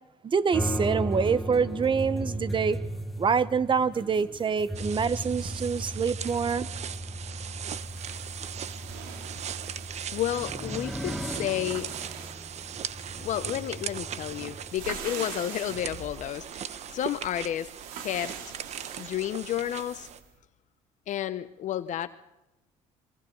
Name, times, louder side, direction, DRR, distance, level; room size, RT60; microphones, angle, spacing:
voice 1, 0.2-2.8 3.2-6.7, right 6 dB, 35° right, 15 dB, 1.2 m, -26 dB
sound 1, 0.5-14.7, equal, ahead, 1.5 m, -36 dB
sound 2, 4.7-20.2, right 9 dB, 50° right, 1.1 m, -39 dB
sound 3, 7.7-20.3, right 7 dB, 75° right, 2.9 m, -45 dB
voice 2, 10.1-11.9 13.2-17.7 18.0-18.4 19.0-20.1 21.1-22.1, left 12 dB, 60° left, 12 dB, 1.0 m, -31 dB
28.5 x 23.0 x 4.0 m, 0.95 s
supercardioid pair, 75°, 14 cm